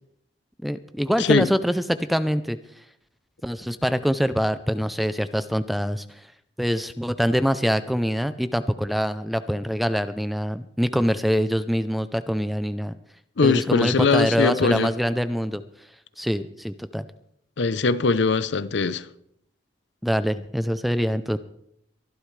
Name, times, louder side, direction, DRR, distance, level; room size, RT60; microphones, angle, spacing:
voice 1, 0.6-2.6 3.4-6.0 6.6-12.9 13.4-15.6 16.2-17.1 20.0-21.4, equal, ahead, 0.4 m, -24 dB
voice 2, 1.2-1.5 13.4-14.9 17.6-19.0, left 4 dB, 65° left, 0.7 m, -21 dB
23.0 x 11.5 x 3.3 m
head